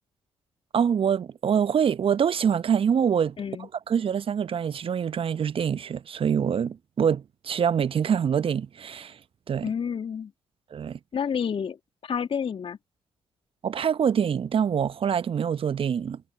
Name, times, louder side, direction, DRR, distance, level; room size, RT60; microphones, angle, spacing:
voice 1, 0.7-9.2 9.5-9.6 10.7-11.0 13.6-16.2, right 7 dB, 45° right, 1.1 m, -25 dB
voice 2, 3.4-3.7 9.6-10.3 11.1-11.8 12.0-12.8, left 7 dB, 45° left, 2.4 m, -29 dB
figure-of-eight pair, 40°, 13 cm